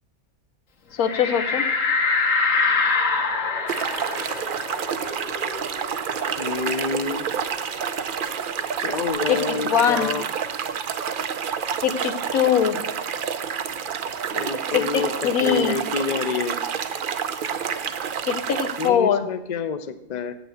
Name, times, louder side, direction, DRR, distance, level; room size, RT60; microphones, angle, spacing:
voice 1, 1.0-1.6 9.3-10.1 11.8-12.8 14.7-15.8 18.3-19.3, left 8 dB, 90° left, 9 dB, 1.3 m, -22 dB
sound 1, 1.0-6.2 6.6-6.7 7.0-8.7, left 4 dB, 65° left, 1.5 m, -25 dB
sound 2, 3.7-18.9, right 7 dB, 60° right, 0.5 m, -28 dB
voice 2, 6.4-7.3 8.8-10.2 14.3-16.6 18.8-20.3, left 5 dB, 45° left, 10 dB, 0.6 m, -28 dB
8.2 x 6.1 x 7.8 m, 0.85 s
omnidirectional pair, 1.5 m